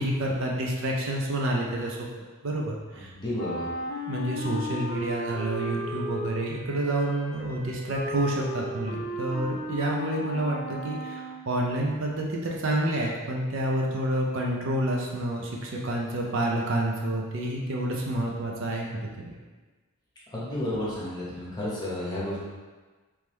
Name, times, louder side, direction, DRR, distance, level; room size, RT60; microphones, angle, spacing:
voice 1, 0.0-2.1 2.4-3.1 4.1-19.3, right 1 dB, 55° right, -1 dB, 0.5 m, -29 dB
voice 2, 3.1-3.7 20.3-22.4, left 1 dB, 20° left, -7 dB, 0.9 m, -31 dB
Wind instrument woodwind instrument, 3.3-11.5, equal, 40° left, 0.4 m, -35 dB
3.5 x 3.2 x 3.1 m, 1.3 s
head